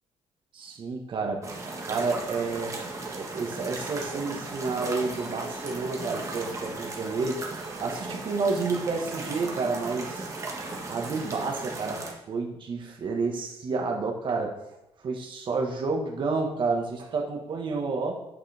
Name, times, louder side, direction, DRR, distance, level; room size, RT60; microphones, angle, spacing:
voice 1, 0.5-1.5 1.8-2.8 3.1-10.3 10.9-14.6 15.0-18.1, right 4 dB, 50° right, 1 dB, 1.5 m, -30 dB
sound 1, 1.4-12.1, right 3 dB, 30° right, 1.5 m, -36 dB
8.8 x 6.2 x 3.5 m, 0.93 s
cardioid pair, 120°, 11 cm